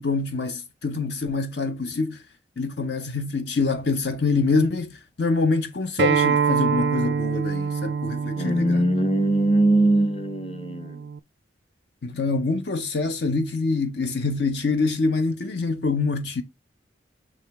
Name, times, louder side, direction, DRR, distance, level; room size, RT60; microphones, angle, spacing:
voice 1, 0.0-2.2 2.6-8.8 12.0-16.4, left 3 dB, 65° left, 0.6 m, -25 dB
Acoustic guitar, 6.0-11.2, right 6 dB, 60° right, 0.4 m, -26 dB
voice 2, 8.4-11.0, right 1 dB, 30° left, 1.0 m, -21 dB
6.5 x 4.8 x 3.4 m
head